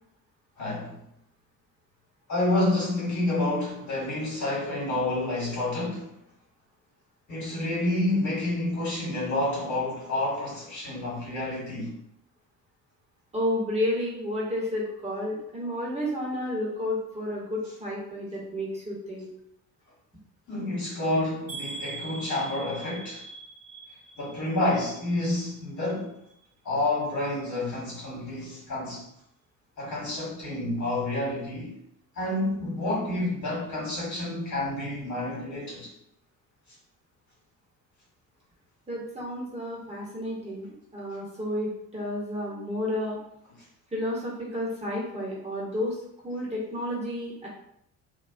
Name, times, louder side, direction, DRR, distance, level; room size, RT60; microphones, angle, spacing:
voice 1, 0.6-1.0 2.3-6.0 7.3-11.9 20.5-23.2 24.2-26.1 26.6-29.0 29.8-31.7 32.2-35.9, left 2 dB, 35° left, -5 dB, 1.4 m, -29 dB
voice 2, 13.3-19.3 38.9-40.7 40.9-43.2 43.9-46.0 46.2-47.5, left 1 dB, 15° right, -5 dB, 1.1 m, -31 dB
sound 1, 21.5-25.5 25.8-26.4 26.8-27.0 27.3-27.4, right 3 dB, 30° right, 1.3 m, -42 dB
2.6 x 2.3 x 2.6 m, 0.75 s
figure-of-eight pair, 45°, 48 cm